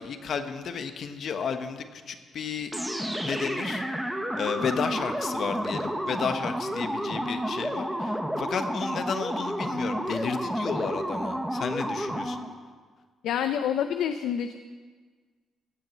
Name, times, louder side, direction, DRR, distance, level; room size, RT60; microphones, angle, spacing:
voice 1, 0.0-2.7 3.2-3.8 4.3-12.4, left 6 dB, 60° left, 8 dB, 1.1 m, -32 dB
sound 1, 2.7-12.6, equal, 5° right, 1.2 m, -31 dB
voice 2, 13.2-14.6, left 9 dB, 80° left, 8 dB, 0.6 m, -27 dB
17.0 x 6.3 x 7.5 m, 1.5 s
cardioid pair, 90°, 0 cm